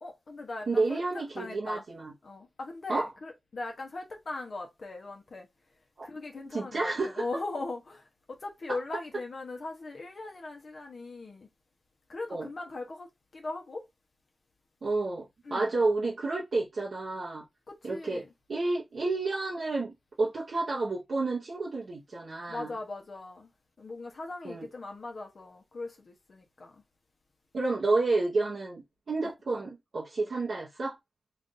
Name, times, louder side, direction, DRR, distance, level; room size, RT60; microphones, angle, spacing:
voice 1, 0.0-1.8 2.2-5.5 6.0-11.5 12.1-13.9 15.4-15.7 17.7-18.3 22.5-23.5 23.8-26.8, left 3 dB, 60° left, 1.0 m, -40 dB
voice 2, 0.7-2.1 2.9-3.1 6.0-6.1 6.5-7.2 12.3-12.5 14.8-17.4 17.8-22.7 24.4-24.7 27.5-31.0, right 3 dB, 70° right, 1.1 m, -30 dB
3.3 x 2.6 x 3.9 m
cardioid pair, 60°, 0 cm